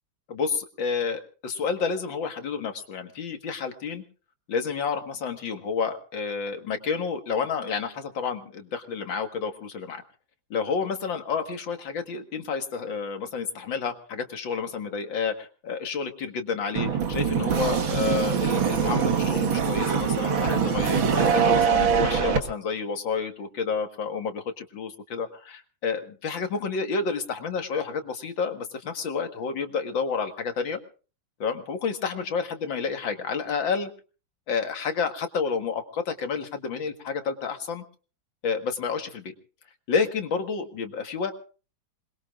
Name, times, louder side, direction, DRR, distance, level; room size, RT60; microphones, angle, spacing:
voice 1, 0.3-4.0 4.5-10.0 10.5-30.8 31.4-33.9 34.5-37.8 38.4-39.3 39.9-41.3, left 5 dB, 70° left, 6 dB, 2.4 m, -30 dB
sound 1, 16.8-22.4, right 6 dB, 75° right, 2.4 m, -23 dB
26.5 x 21.0 x 2.5 m, 0.38 s
omnidirectional pair, 2.2 m